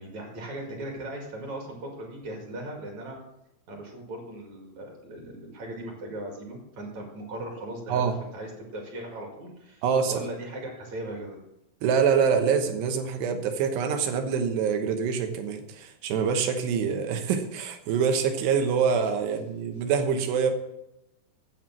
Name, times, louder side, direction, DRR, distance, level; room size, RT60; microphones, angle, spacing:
voice 1, 0.0-3.2 3.7-8.0 8.3-11.4, right 1 dB, 45° right, 0 dB, 2.9 m, -38 dB
voice 2, 9.8-10.2 11.8-20.5, right 6 dB, 70° right, 6 dB, 3.1 m, -25 dB
9.3 x 8.2 x 7.3 m, 0.86 s
omnidirectional pair, 5.3 m